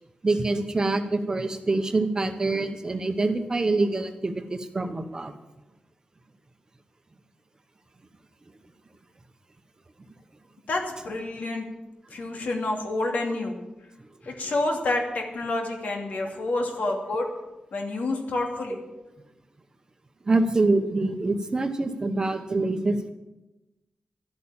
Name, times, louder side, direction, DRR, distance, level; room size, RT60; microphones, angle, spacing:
voice 1, 0.2-5.3 20.3-23.1, right 2 dB, 25° right, 7 dB, 1.0 m, -25 dB
voice 2, 10.7-11.6 12.1-13.6 14.2-17.3 17.7-18.8, left 2 dB, 70° left, 2 dB, 2.6 m, -28 dB
12.5 x 8.6 x 8.8 m, 1.0 s
wide cardioid pair, 175°, 3 cm